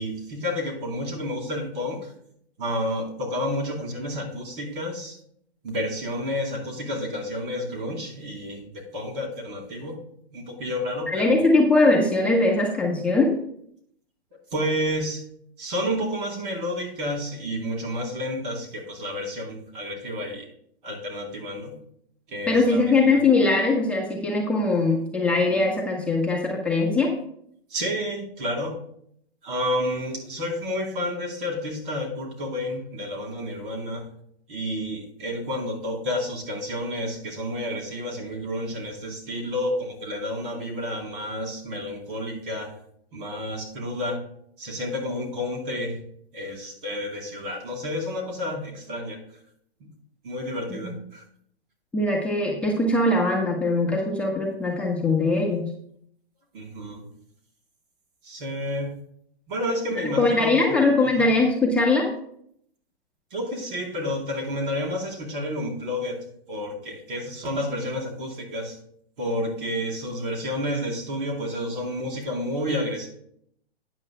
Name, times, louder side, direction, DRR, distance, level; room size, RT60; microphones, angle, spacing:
voice 1, 0.0-2.1 2.6-5.2 5.6-11.4 14.5-15.2 15.6-20.5 20.8-21.7 22.3-23.2 27.7-28.8 29.4-34.0 34.5-42.7 43.1-44.2 44.6-46.0 46.3-49.2 50.2-51.2 56.5-57.0 58.2-58.9 59.5-60.8 61.0-61.3 63.3-68.8 69.2-73.1, left 1 dB, 55° right, 1 dB, 3.5 m, -30 dB
voice 2, 11.1-13.3 22.5-27.1 50.8-50.9 51.9-55.6 60.2-62.1, left 2 dB, 5° left, -3 dB, 1.2 m, -21 dB
13.0 x 9.1 x 2.2 m, 0.69 s
hypercardioid pair, 135°, 32 cm